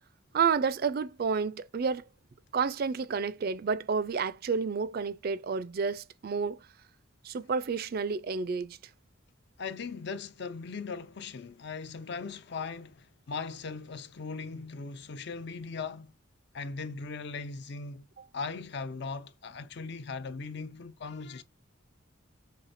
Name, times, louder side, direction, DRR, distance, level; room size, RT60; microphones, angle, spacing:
voice 1, 0.3-2.0 2.5-6.7 7.2-8.8 18.2-18.3, right 5 dB, 45° right, 0.3 m, -30 dB
voice 2, 9.6-16.1 16.5-18.0 18.3-21.4, left 4 dB, 55° left, 0.5 m, -39 dB
5.7 x 3.2 x 2.5 m
head